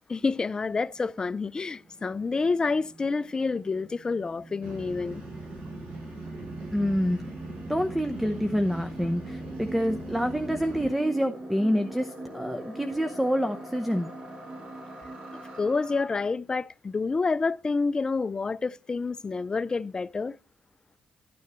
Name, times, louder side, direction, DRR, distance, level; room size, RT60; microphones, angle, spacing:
voice 1, 0.1-5.2 15.6-20.4, left 4 dB, 30° left, 0.4 m, -28 dB
sound 1, 1.1-16.3, right 1 dB, 50° right, 5.5 m, -43 dB
sound 2, 4.6-10.9, right 2 dB, 70° right, 6.0 m, -40 dB
voice 2, 6.7-7.2 7.7-14.1, equal, 5° right, 0.8 m, -27 dB
12.5 x 9.5 x 3.0 m
cardioid pair, 95°, 3 cm